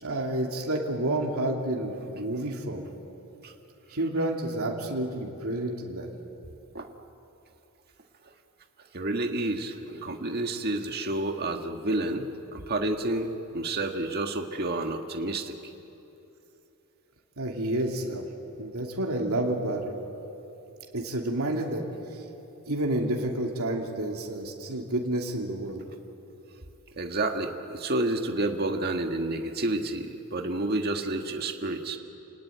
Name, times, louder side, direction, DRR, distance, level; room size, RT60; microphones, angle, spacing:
voice 1, 0.0-2.9 3.9-6.1 17.4-18.3 18.6-19.9 20.9-21.8 22.7-25.8, right 1 dB, 75° right, 0 dB, 2.9 m, -29 dB
voice 2, 8.9-15.5 27.0-32.0, right 2 dB, 45° right, 4 dB, 1.7 m, -30 dB
29.0 x 19.0 x 9.3 m, 2.9 s
head